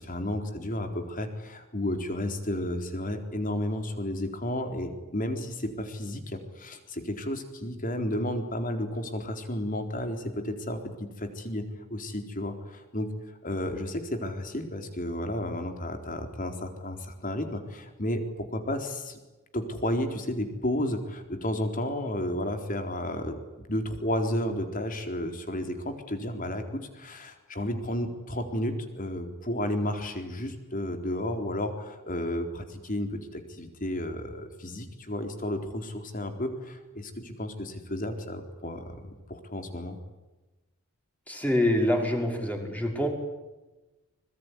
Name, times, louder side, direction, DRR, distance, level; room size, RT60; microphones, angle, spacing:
voice 1, 0.0-19.2 19.5-23.4 23.7-40.0, left 1 dB, 40° left, 6 dB, 4.0 m, -32 dB
voice 2, 41.3-43.1, left 1 dB, 5° left, 2 dB, 5.6 m, -26 dB
25.0 x 22.0 x 9.9 m, 1.1 s
head